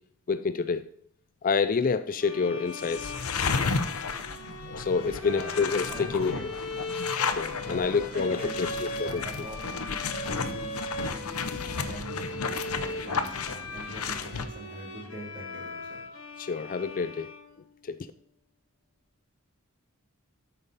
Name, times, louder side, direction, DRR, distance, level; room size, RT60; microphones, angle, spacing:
voice 1, 0.3-0.9 1.4-3.1 3.5-4.0 4.8-6.5 7.2-9.5 16.4-17.3 17.8-18.1, left 5 dB, 40° left, 0.4 m, -28 dB
sound 1, 2.2-17.9, left 2 dB, 70° left, 1.5 m, -39 dB
sound 2, 2.8-14.4, left 5 dB, 90° left, 0.8 m, -33 dB
voice 2, 5.2-5.5 5.9-6.4 7.6-9.6 10.3-10.8 11.1-16.0, right 1 dB, 40° right, 3.7 m, -42 dB
13.0 x 5.6 x 4.1 m
head